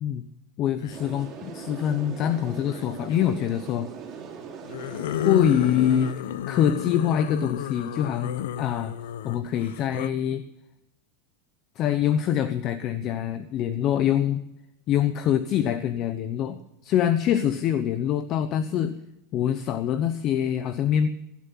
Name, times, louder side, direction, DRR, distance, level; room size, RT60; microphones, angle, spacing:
voice 1, 0.6-3.9 5.2-6.1 6.5-9.0 9.2-10.4 11.8-14.4 14.9-19.0 19.3-21.1, left 10 dB, 35° left, 12 dB, 0.8 m, -24 dB
sound 1, 0.8-1.1 2.7-3.2 4.6-10.1, left 10 dB, 80° left, 0.7 m, -32 dB
sound 2, 0.9-6.1, right 6 dB, 30° right, 3.6 m, -40 dB
17.5 x 11.5 x 5.7 m, 0.90 s
supercardioid pair, 145°, 0 cm